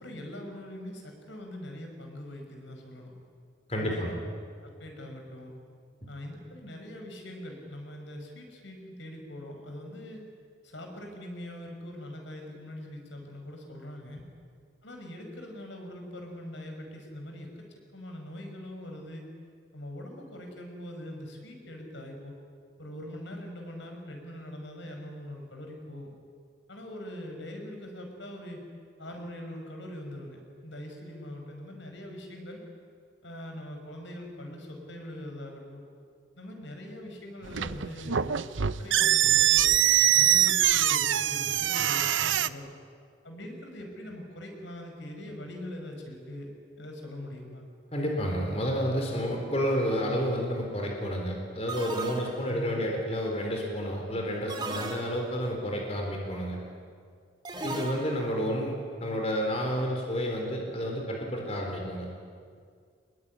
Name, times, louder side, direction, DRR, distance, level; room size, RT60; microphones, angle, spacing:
voice 1, 0.0-3.1 3.8-4.1 4.6-5.5 6.1-10.2 10.6-14.2 14.8-17.7 17.9-19.2 19.7-22.3 22.8-26.1 26.7-28.6 29.0-32.6 33.2-35.8 36.4-39.7 40.1-42.7 43.2-46.5 46.8-47.7 52.5-52.9, left 1 dB, 75° left, 3 dB, 5.6 m, -42 dB
voice 2, 3.7-4.2 47.9-56.6 57.6-58.7 59.0-62.1, equal, 35° left, 0 dB, 4.1 m, -30 dB
sound 1, 37.4-42.5, right 11 dB, 85° right, 0.7 m, -23 dB
sound 2, 49.7-50.0 51.7-52.7 54.5-55.5 57.5-58.4, right 2 dB, 25° right, 2.7 m, -37 dB
25.5 x 21.5 x 9.9 m, 2.1 s
head